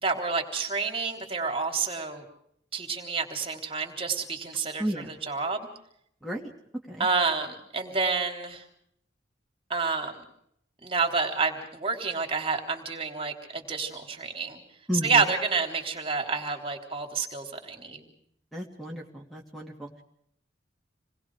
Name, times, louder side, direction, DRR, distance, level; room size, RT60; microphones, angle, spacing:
voice 1, 0.0-2.2 2.7-5.7 7.0-8.6 9.7-10.2 10.8-14.6 15.0-18.1, right 4 dB, 30° right, 3 dB, 3.6 m, -29 dB
voice 2, 4.8-5.1 6.2-6.5 6.9-7.1 14.9-15.2 18.5-19.9, equal, ahead, 0 dB, 2.6 m, -33 dB
28.0 x 21.0 x 5.0 m, 0.71 s
head